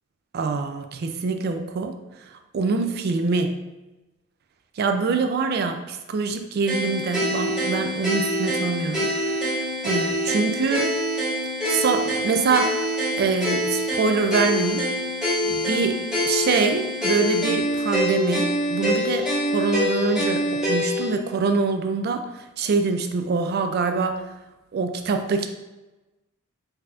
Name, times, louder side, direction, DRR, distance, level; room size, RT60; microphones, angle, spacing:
voice 1, 0.3-1.9 2.5-3.6 4.8-9.1 9.4-10.9 11.7-12.8 13.1-14.9 15.4-19.3 19.5-22.2 22.6-24.2 24.7-25.5, right 4 dB, 50° right, 6 dB, 0.3 m, -24 dB
sound 1, 6.7-21.1, equal, 5° right, 1.2 m, -25 dB
3.9 x 2.8 x 2.4 m, 1.1 s
head